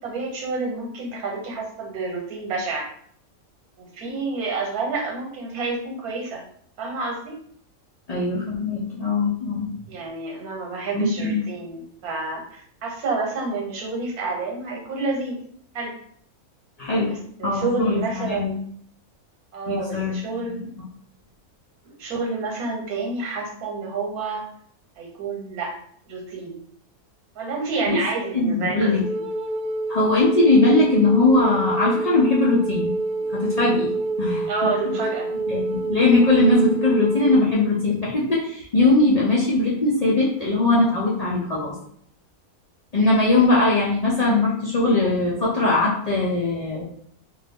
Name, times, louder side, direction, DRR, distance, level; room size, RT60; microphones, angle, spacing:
voice 1, 0.0-2.8 3.8-6.4 6.8-7.3 9.9-15.4 15.7-15.9 17.0-18.6 19.5-20.6 21.8-24.4 25.0-25.7 26.1-26.6 27.3-29.3 34.5-35.3, right 3 dB, 80° right, 0 dB, 1.3 m, -29 dB
voice 2, 8.1-9.7 10.9-11.4 16.8-17.1 17.4-18.6 19.7-20.2 20.5-20.7 27.9-28.0 28.3-29.0 29.9-32.9 33.3-34.5 34.8-34.9 35.5-41.7 42.9-46.8, left 2 dB, 60° left, -6 dB, 0.4 m, -20 dB
Wind instrument woodwind instrument, 29.0-37.4, right 2 dB, 60° right, 0.6 m, -27 dB
2.6 x 2.5 x 3.4 m, 0.62 s
omnidirectional pair, 1.6 m